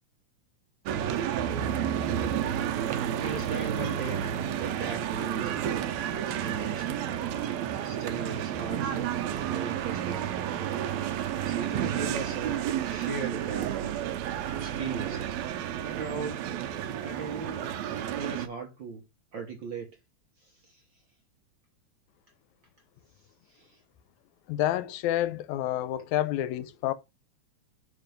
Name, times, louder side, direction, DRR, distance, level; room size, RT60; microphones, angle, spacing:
bcnt market square, 0.9-18.5, right 10 dB, 75° right, 1.8 m, -31 dB
voice 1, 2.0-2.4 3.1-4.2 4.5-5.9 6.3-7.0 7.8-9.1 9.5-10.4 11.4-14.2 14.6-15.4 15.8-16.4 16.9-17.7 18.1-19.1 19.3-20.0 20.4-21.0 23.4-23.8, right 5 dB, 60° right, 1.3 m, -38 dB
voice 2, 24.5-26.9, left 13 dB, 80° left, 2.0 m, -29 dB
5.8 x 4.4 x 5.1 m
omnidirectional pair, 3.3 m